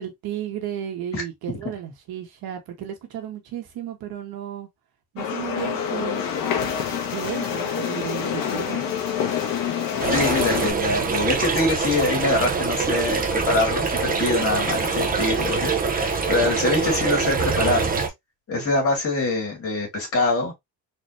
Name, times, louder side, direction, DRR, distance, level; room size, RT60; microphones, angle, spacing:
voice 1, 0.0-4.7 5.1-6.6 7.1-8.8, right 10 dB, 85° right, 1.6 m, -34 dB
sound 1, 5.2-10.7, left 8 dB, 65° left, 1.3 m, -26 dB
sound 2, 10.0-18.1, right 5 dB, 25° right, 0.8 m, -24 dB
voice 2, 10.1-17.9 18.5-20.5, left 2 dB, 40° left, 2.5 m, -24 dB
4.2 x 3.4 x 2.8 m
cardioid pair, 170°, 36 cm